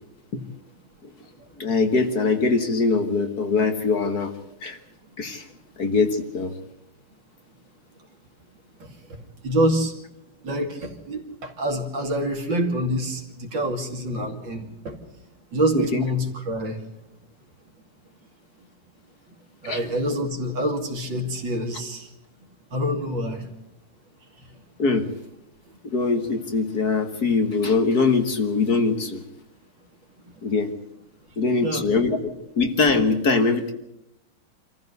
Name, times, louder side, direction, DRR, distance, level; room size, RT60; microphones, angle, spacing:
voice 1, 1.6-4.3 4.6-4.8 5.2-5.5 5.8-6.5 15.7-16.0 19.6-19.8 24.8-25.1 25.8-29.2 30.4-30.7 31.4-33.7, left 4 dB, 50° left, 7 dB, 1.9 m, -22 dB
voice 2, 8.8-10.0 10.4-15.0 15.5-16.8 19.6-22.1 22.7-23.5 24.4-24.5 25.7-25.8 31.3-31.9, equal, 60° right, 3 dB, 3.3 m, -27 dB
26.0 x 15.0 x 8.0 m, 0.85 s
omnidirectional pair, 2.3 m